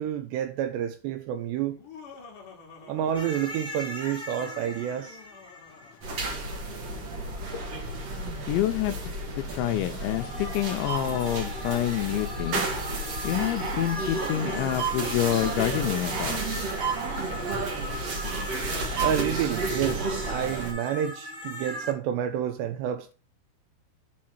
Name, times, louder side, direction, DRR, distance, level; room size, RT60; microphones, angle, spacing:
voice 1, 0.0-1.8 2.8-5.2 19.0-23.1, right 10 dB, 80° right, 2.6 m, -29 dB
Laughter, 1.7-3.8 4.3-6.6, left 5 dB, 50° left, 3.0 m, -50 dB
sound 1, 3.1-6.8 9.1-21.9, left 1 dB, ahead, 2.4 m, -39 dB
sound 2, 6.0-20.7, right 3 dB, 50° right, 2.0 m, -31 dB
voice 2, 8.5-9.0 9.4-12.6 13.2-16.4, left 13 dB, 85° left, 2.9 m, -27 dB
7.6 x 4.7 x 5.8 m
omnidirectional pair, 5.5 m